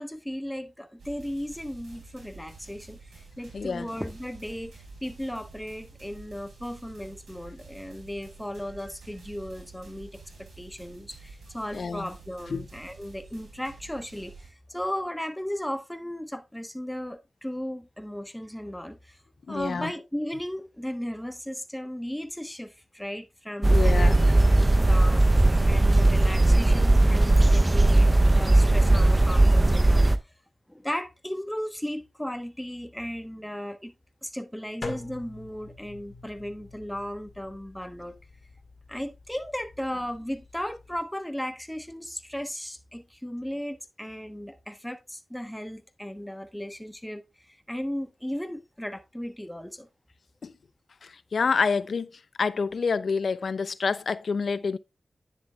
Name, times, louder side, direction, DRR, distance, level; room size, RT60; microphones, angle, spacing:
voice 1, 0.0-19.2 19.5-30.2 30.7-33.9 34.2-38.2 38.9-49.9, equal, 5° left, 1.1 m, -36 dB
sound 1, 1.0-14.5, right 3 dB, 90° right, 3.2 m, -49 dB
voice 2, 3.5-3.9 11.7-12.1 12.5-12.7 19.5-19.9 23.7-24.2 50.4-50.5 51.0-52.1 52.4-54.8, left 5 dB, 75° left, 0.5 m, -27 dB
sound 2, 23.6-30.2, right 2 dB, 30° right, 0.7 m, -18 dB
sound 3, 34.8-41.0, left 2 dB, 55° left, 1.9 m, -44 dB
9.9 x 6.9 x 2.3 m
cardioid pair, 50°, 0 cm